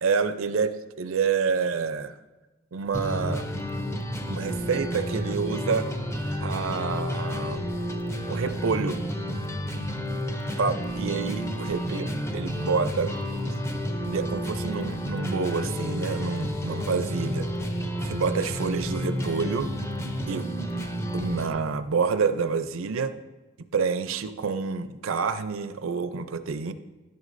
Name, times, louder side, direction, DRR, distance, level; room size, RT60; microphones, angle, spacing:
voice 1, 0.0-2.1 2.7-3.5 4.3-5.9 6.4-7.7 8.3-9.0 10.6-13.1 14.0-17.5 18.0-19.7 20.3-20.5 21.1-23.1 23.7-26.7, right 5 dB, 70° right, 11 dB, 0.5 m, -28 dB
sound 1, 2.9-21.5, equal, 15° left, 0.6 m, -31 dB
11.0 x 9.4 x 2.6 m, 1.1 s
head